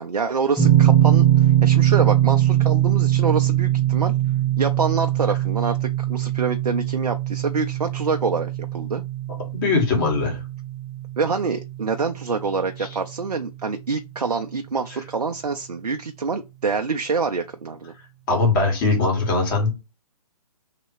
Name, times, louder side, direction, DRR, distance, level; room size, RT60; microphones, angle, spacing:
voice 1, 0.0-4.1 4.6-9.0 11.2-17.9, right 4 dB, 85° right, 0.5 m, -26 dB
sound 1, 0.6-13.5, right 12 dB, ahead, 1.1 m, -21 dB
voice 2, 9.5-10.4 18.3-19.7, left 3 dB, 30° left, 1.8 m, -20 dB
3.3 x 3.0 x 4.5 m
figure-of-eight pair, 135°, 20 cm